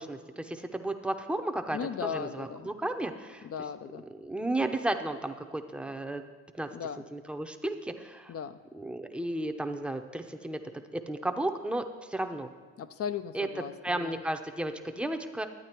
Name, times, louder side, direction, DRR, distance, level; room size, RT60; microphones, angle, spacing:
voice 1, 0.0-3.5 4.1-6.2 6.6-6.7 7.1-8.3 8.7-10.6 10.9-12.5 13.3-13.5 13.8-15.5, right 1 dB, 5° right, 6 dB, 0.7 m, -33 dB
voice 2, 1.7-2.7 3.4-4.0 6.7-7.0 8.3-8.6 12.8-14.2, left 8 dB, 50° left, 12 dB, 0.5 m, -37 dB
11.0 x 9.0 x 4.4 m, 1.4 s
cardioid pair, 90°, 30 cm